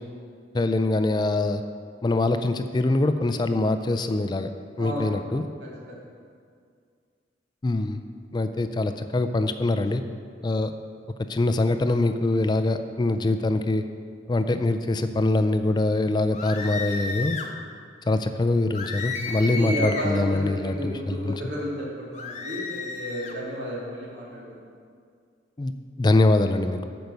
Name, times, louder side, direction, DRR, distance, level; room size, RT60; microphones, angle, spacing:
voice 1, 0.5-1.6 2.0-4.5 4.8-5.5 7.6-8.0 8.3-10.0 10.4-10.7 11.3-13.8 14.3-17.4 18.1-21.4 25.6-25.7 26.0-26.9, left 2 dB, 25° left, 9 dB, 0.3 m, -23 dB
voice 2, 4.8-5.1 5.6-6.0 19.4-24.6, equal, 80° right, -5 dB, 2.5 m, -32 dB
sound 1, 16.3-17.5 18.7-20.2 22.1-23.4, left 4 dB, 40° left, 0.7 m, -33 dB
9.1 x 5.2 x 6.6 m, 2.2 s
head